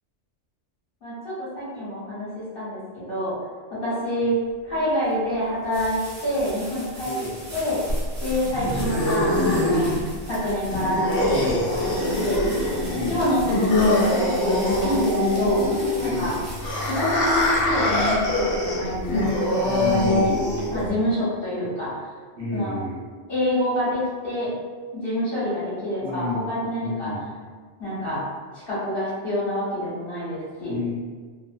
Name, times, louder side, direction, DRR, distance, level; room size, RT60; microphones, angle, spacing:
voice 1, 1.0-3.3 3.8-4.4 4.6-7.1 7.5-7.8 8.2-10.0 10.3-11.4 11.7-12.4 13.1-15.6 16.0-16.3 16.8-19.3 20.0-20.3 20.7-21.9 22.5-22.8 23.3-24.5 24.9-27.1 27.8-28.2 28.7-30.8, left 1 dB, 50° left, -10 dB, 1.4 m, -27 dB
sound 1, 4.5-19.4, equal, 35° right, 0.8 m, -41 dB
voice 2, 7.0-7.3 11.3-11.7 12.9-13.3 16.0-16.4 19.6-20.5 22.4-23.0 25.0-25.1 26.0-26.5 26.8-27.3 30.6-30.9, left 3 dB, 65° right, -6 dB, 1.1 m, -30 dB
sound 2, 7.9-20.9, left 1 dB, 90° left, 1.1 m, -23 dB
sound 3, 14.7-15.9 16.3-19.3 19.7-20.9, equal, 35° left, 0.9 m, -39 dB
3.0 x 2.1 x 2.5 m, 1.5 s
omnidirectional pair, 1.2 m